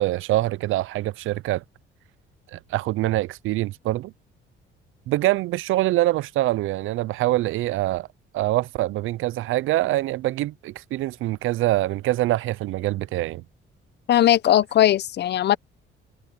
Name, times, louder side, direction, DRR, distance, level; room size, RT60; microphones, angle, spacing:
voice 1, 0.0-1.6 2.5-4.1 5.1-8.1 8.3-13.4, right 16 dB, 75° right, 0.5 m, -24 dB
voice 2, 14.1-15.6, left 12 dB, 55° left, 0.7 m, -18 dB
cardioid pair, 120°, 21 cm